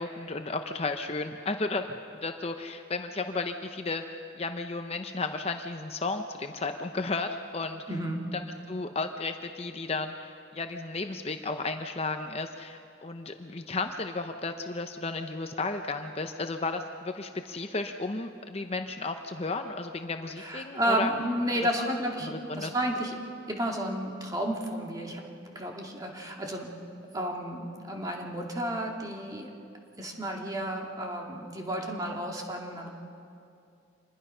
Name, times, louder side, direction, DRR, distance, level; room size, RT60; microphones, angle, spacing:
voice 1, 0.0-4.0 4.4-7.8 8.7-21.1 21.6-21.7 22.2-22.7, left 3 dB, 30° left, 6 dB, 0.7 m, -33 dB
voice 2, 7.9-8.2 20.4-23.2 23.5-25.2 25.5-26.7 27.1-29.5 30.0-32.9, right 1 dB, 20° right, 0 dB, 2.2 m, -32 dB
26.5 x 21.0 x 5.6 m, 2.6 s
head